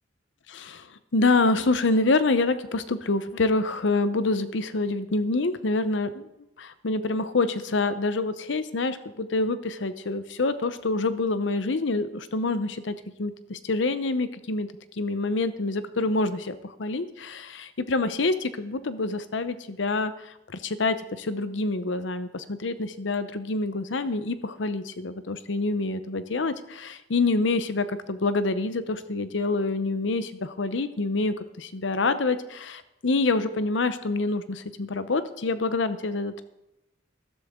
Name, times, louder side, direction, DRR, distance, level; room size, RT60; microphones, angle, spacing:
voice 1, 0.5-6.3 6.6-36.4, left 3 dB, 85° left, 12 dB, 0.8 m, -27 dB
13.5 x 11.5 x 3.7 m, 0.92 s
head